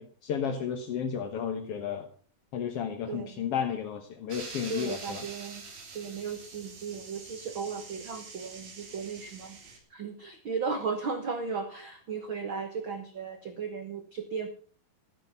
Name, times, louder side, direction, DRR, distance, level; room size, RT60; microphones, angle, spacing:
voice 1, 0.0-2.0 2.5-5.2, left 7 dB, 65° left, 6 dB, 1.5 m, -33 dB
voice 2, 3.1-3.4 4.7-5.6 5.9-9.6 9.9-14.5, right 5 dB, 75° right, 7 dB, 1.1 m, -35 dB
sound 1, 4.3-9.8, right 4 dB, 45° right, 3.7 m, -45 dB
14.0 x 10.5 x 5.8 m, 0.43 s
omnidirectional pair, 4.4 m